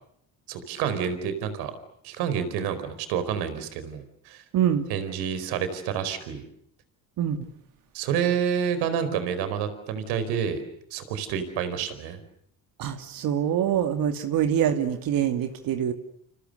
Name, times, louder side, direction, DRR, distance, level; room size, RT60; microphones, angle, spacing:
voice 1, 0.5-1.7 2.0-4.4 4.9-6.4 7.9-10.6 10.9-12.2, right 8 dB, 85° right, 11 dB, 4.7 m, -28 dB
voice 2, 4.5-4.9 7.2-7.4 12.8-15.9, right 9 dB, 60° right, 7 dB, 2.6 m, -25 dB
30.0 x 28.5 x 6.7 m, 0.68 s
cardioid pair, 110°, 38 cm